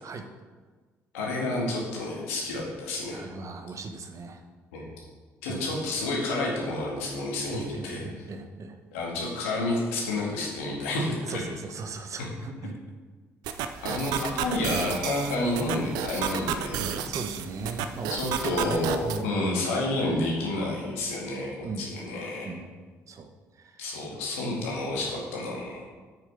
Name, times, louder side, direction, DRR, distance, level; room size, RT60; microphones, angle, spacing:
voice 1, 1.1-3.2 4.7-5.0 5.4-8.2 8.9-11.5 13.8-17.0 18.1-22.5 23.8-25.8, left 2 dB, 90° left, -3 dB, 2.0 m, -30 dB
voice 2, 3.1-4.4 5.5-5.8 7.5-8.8 11.3-12.8 13.8-14.0 17.0-19.4 21.6-21.9 22.4-22.6 23.1-23.3 23.6-23.8, right 3 dB, 50° right, 6 dB, 1.1 m, -38 dB
sound 1, 13.4-19.2, right 8 dB, 75° right, 0.5 m, -32 dB
7.4 x 6.4 x 5.2 m, 1.4 s
hypercardioid pair, 55°, 7 cm